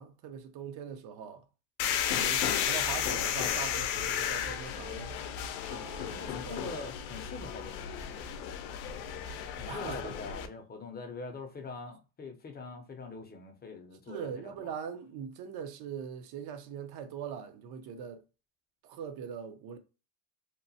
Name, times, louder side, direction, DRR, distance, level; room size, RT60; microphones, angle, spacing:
voice 1, 0.0-1.4 2.1-5.2 5.6-6.7 9.7-10.1 14.1-18.2 18.8-19.8, right 7 dB, 60° right, 0.7 m, -41 dB
sound 1, 1.8-10.5, left 9 dB, 80° left, 0.6 m, -33 dB
voice 2, 6.1-8.0 9.5-14.7, left 3 dB, 20° left, 0.6 m, -43 dB
2.9 x 2.0 x 2.7 m
supercardioid pair, 110°, 44 cm